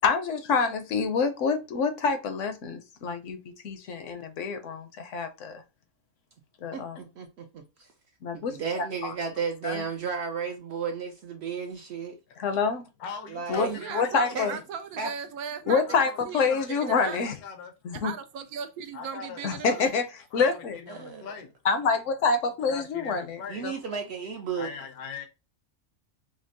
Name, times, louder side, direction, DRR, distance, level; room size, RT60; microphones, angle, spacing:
voice 1, 0.0-3.4 3.6-5.6 6.6-7.0 8.2-9.1 9.6-9.8 12.4-12.8 13.5-14.6 15.7-17.3 17.8-18.1 19.4-20.1 20.3-20.8 21.6-23.7, left 5 dB, 65° left, 0.8 m, -27 dB
voice 2, 7.2-7.9 8.3-12.2 13.3-13.8 14.3-14.5 15.0-15.1 20.9-21.3 23.5-24.7, right 5 dB, 65° right, 0.7 m, -33 dB
voice 3, 13.0-14.6 15.8-17.7 18.9-19.9 20.3-21.5 22.7-23.6 24.5-25.3, left 6 dB, 85° left, 1.2 m, -41 dB
voice 4, 13.7-17.4 17.9-19.9, right 7 dB, 80° right, 1.0 m, -38 dB
5.1 x 2.0 x 2.6 m
omnidirectional pair, 1.5 m